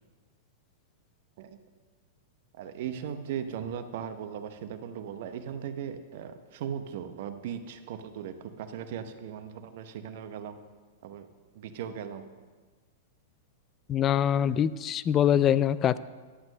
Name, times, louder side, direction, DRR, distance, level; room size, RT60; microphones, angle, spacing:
voice 1, 2.6-10.6 11.0-11.3 11.5-12.3, right 8 dB, 60° right, 9 dB, 0.9 m, -38 dB
voice 2, 13.9-16.0, left 9 dB, 30° left, 17 dB, 0.4 m, -24 dB
11.5 x 6.1 x 6.5 m, 1.4 s
hypercardioid pair, 110°, 0 cm